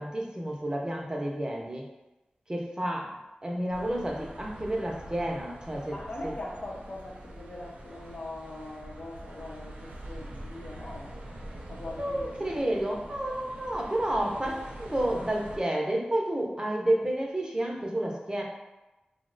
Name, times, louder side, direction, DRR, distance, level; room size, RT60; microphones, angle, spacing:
voice 1, 0.0-1.9 2.5-3.1 3.4-6.0 11.9-18.4, right 1 dB, 25° right, -1 dB, 0.6 m, -30 dB
sound 1, 3.7-15.6, right 1 dB, 90° right, 0.5 m, -44 dB
voice 2, 5.9-11.1 11.7-12.8, left 1 dB, 65° left, -2 dB, 0.6 m, -41 dB
2.8 x 2.1 x 3.8 m, 1.0 s
cardioid pair, 45°, 3 cm